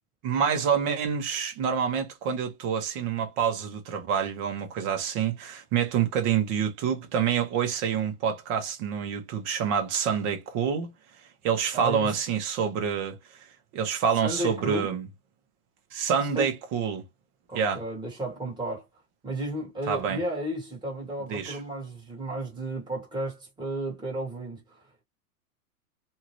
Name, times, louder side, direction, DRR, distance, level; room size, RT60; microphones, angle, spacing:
voice 1, 0.2-10.9 11.4-13.5 13.7-15.0 15.9-17.0 17.5-17.8 19.9-20.2 21.3-21.6, right 7 dB, 35° right, 1.0 m, -27 dB
voice 2, 11.7-12.1 14.2-14.9 16.3-16.5 17.5-18.8 19.2-24.8, right 1 dB, 10° right, 1.5 m, -33 dB
2.8 x 2.4 x 3.0 m
hypercardioid pair, 125°, 46 cm